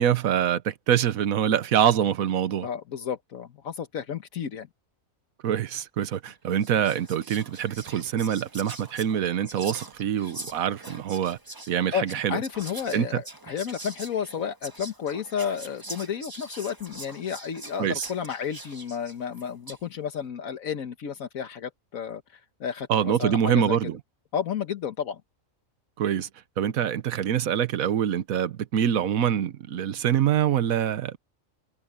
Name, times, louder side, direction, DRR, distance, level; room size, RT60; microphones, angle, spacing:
voice 1, 0.0-2.7 5.4-11.4 11.7-12.4 12.9-13.2 17.8-18.1 22.9-24.0 26.0-26.3 26.6-31.2, right 9 dB, 80° right, 1.3 m, -25 dB
voice 2, 2.6-4.7 11.9-23.8 24.3-25.2, left 8 dB, 80° left, 1.5 m, -32 dB
Whispering, 6.0-6.2 6.6-19.9, right 2 dB, 15° right, 1.4 m, -43 dB
omnidirectional pair, 1.4 m